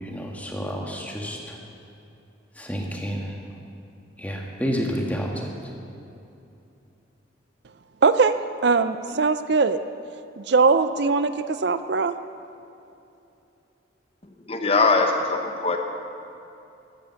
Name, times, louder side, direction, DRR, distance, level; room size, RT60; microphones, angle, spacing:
voice 1, 0.0-1.6 2.6-3.4 4.2-5.5, equal, 10° left, 0 dB, 1.6 m, -29 dB
voice 2, 8.0-8.4 8.6-9.8 10.4-12.1, right 4 dB, 60° right, 11 dB, 0.5 m, -20 dB
voice 3, 14.5-15.8, left 3 dB, 30° left, 4 dB, 1.0 m, -21 dB
14.5 x 12.0 x 7.0 m, 2.7 s
head